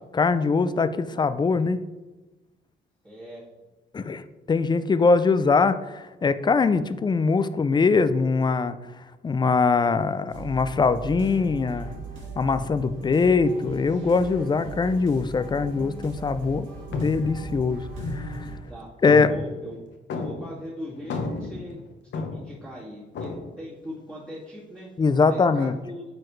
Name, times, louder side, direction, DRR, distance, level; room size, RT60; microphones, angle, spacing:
voice 1, 0.1-1.8 3.9-8.7 9.2-11.9 12.4-18.5 19.0-19.3 25.0-25.7, left 4 dB, 20° left, 13 dB, 0.4 m, -22 dB
voice 2, 3.0-3.4 18.7-19.8 20.1-21.8 22.1-23.3 23.6-24.9 25.2-26.0, equal, 15° right, -9 dB, 2.2 m, -40 dB
sound 1, 10.3-18.6, right 3 dB, 75° right, 2.0 m, -39 dB
sound 2, 16.5-16.6 16.9-18.7 19.1-20.7 20.9-22.7 23.1-23.5, left 3 dB, 65° left, 1.0 m, -33 dB
9.2 x 4.3 x 3.2 m, 1.1 s
cardioid pair, 90°, 20 cm